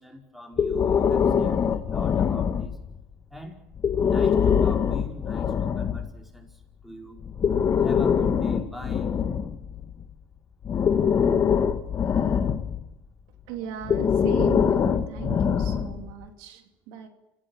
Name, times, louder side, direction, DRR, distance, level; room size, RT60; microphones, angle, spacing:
voice 1, 0.0-2.8 3.3-3.6 4.0-7.2 7.8-9.2, left 1 dB, ahead, 2 dB, 5.2 m, -42 dB
Breathing, 0.6-3.0 3.7-6.1 7.2-10.0 10.6-12.9 13.8-16.1, left 7 dB, 40° left, 1.7 m, -23 dB
voice 2, 13.5-17.1, right 8 dB, 80° right, 5 dB, 3.0 m, -37 dB
29.5 x 16.5 x 7.4 m, 0.97 s
supercardioid pair, 95°, 8 cm